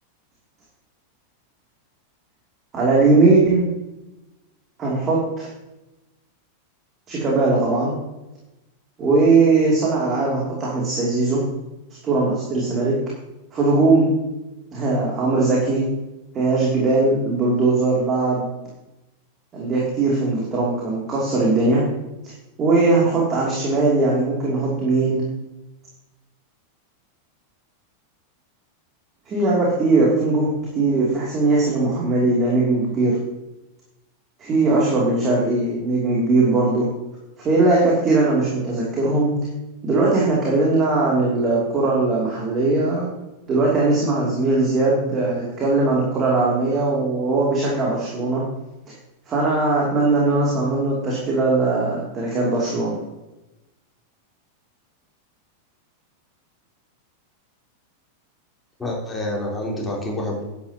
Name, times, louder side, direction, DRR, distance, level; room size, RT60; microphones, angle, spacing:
voice 1, 2.7-3.7 4.8-5.5 7.1-7.9 9.0-11.4 12.0-12.9 13.5-14.1 14.7-15.8 16.3-18.4 19.5-21.8 22.6-25.2 29.3-33.2 34.4-36.9 37.4-39.3 39.8-43.1 43.5-48.4 49.3-52.9, right 3 dB, 25° right, -4 dB, 2.8 m, -19 dB
voice 2, 58.8-60.4, left 1 dB, 10° left, -3 dB, 3.6 m, -27 dB
11.5 x 10.5 x 2.9 m, 0.97 s
figure-of-eight pair, 90°, 0 cm